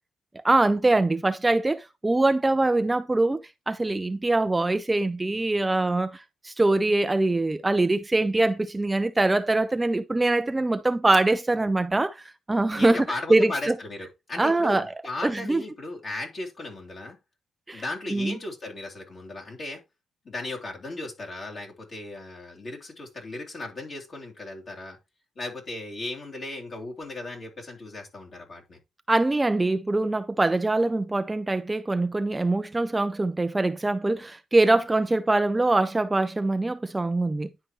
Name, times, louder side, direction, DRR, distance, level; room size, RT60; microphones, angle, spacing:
voice 1, 0.3-13.8 14.4-14.9 15.2-15.6 17.7-17.8 18.1-18.4 29.1-37.5, right 2 dB, 15° right, 0.4 m, -23 dB
voice 2, 12.7-17.2 17.7-19.8 20.2-25.0 25.3-28.8, left 2 dB, 45° left, 3.1 m, -36 dB
10.5 x 4.6 x 3.1 m
cardioid pair, 90°, 0 cm